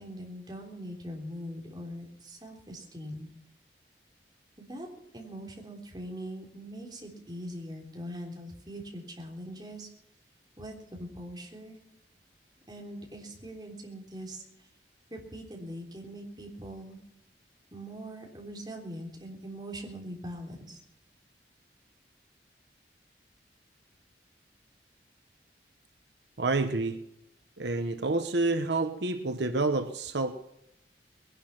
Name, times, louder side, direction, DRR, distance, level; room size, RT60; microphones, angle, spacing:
voice 1, 0.0-3.3 4.6-4.9 5.1-9.9 10.6-11.8 12.7-14.4 15.1-17.0 17.7-20.8, equal, 25° right, -1 dB, 3.5 m, -42 dB
voice 2, 26.4-27.0 27.6-30.3, right 2 dB, 80° right, 8 dB, 1.0 m, -28 dB
20.5 x 11.5 x 5.9 m, 0.80 s
head